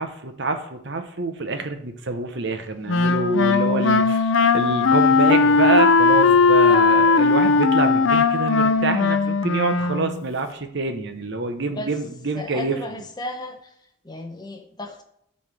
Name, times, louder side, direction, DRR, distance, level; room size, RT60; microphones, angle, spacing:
voice 1, 0.0-12.8, right 3 dB, 60° right, 6 dB, 0.9 m, -26 dB
Wind instrument woodwind instrument, 2.9-10.3, left 4 dB, 65° left, 0.5 m, -18 dB
voice 2, 6.7-7.1 11.7-11.9 12.3-13.7 14.0-15.0, left 1 dB, 20° left, 4 dB, 0.7 m, -34 dB
12.0 x 4.4 x 3.4 m, 0.75 s
head